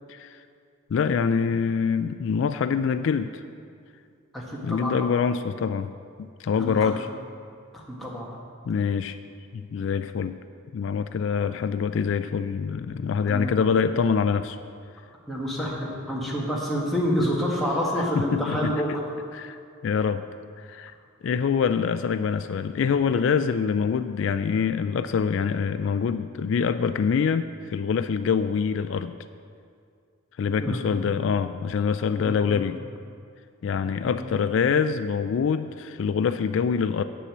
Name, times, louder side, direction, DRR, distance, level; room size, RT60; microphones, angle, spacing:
voice 1, 0.1-0.4 0.9-3.4 4.6-5.9 6.2-7.1 8.7-9.2 9.5-10.4 10.7-14.6 18.0-19.0 19.3-20.2 20.6-20.9 21.2-29.2 30.4-32.8 33.6-37.0, left 6 dB, 65° left, 11 dB, 0.3 m, -25 dB
voice 2, 4.3-4.9 6.5-6.9 7.7-8.3 13.3-13.6 15.3-15.7 16.1-19.1 30.6-31.2 32.1-32.6 34.0-34.4, equal, ahead, -6 dB, 1.7 m, -28 dB
9.5 x 6.9 x 7.3 m, 2.3 s
head